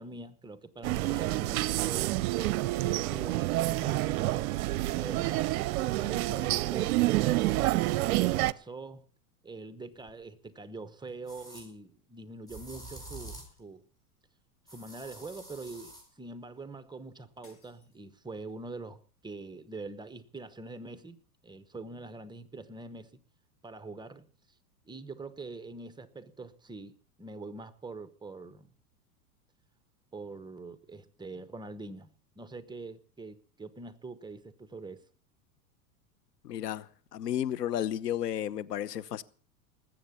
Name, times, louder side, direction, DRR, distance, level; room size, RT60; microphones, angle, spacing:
voice 1, 0.0-2.2 2.8-4.7 5.0-5.5 5.9-7.7 8.1-9.0 9.4-13.8 14.7-21.2 21.4-23.1 23.6-24.3 24.9-28.7 30.1-35.0, right 3 dB, 10° right, 0.9 m, -44 dB
sound 1, 0.8-8.5, right 18 dB, 65° right, 0.6 m, -28 dB
sound 2, 10.1-10.2 11.3-11.7 12.5-13.6 14.7-16.1, right 1 dB, 10° left, 6.9 m, -47 dB
sound 3, 17.4-18.7, left 4 dB, 40° left, 7.1 m, -65 dB
voice 2, 36.4-39.2, left 11 dB, 85° left, 0.9 m, -33 dB
19.5 x 8.0 x 6.8 m
hypercardioid pair, 105°, 46 cm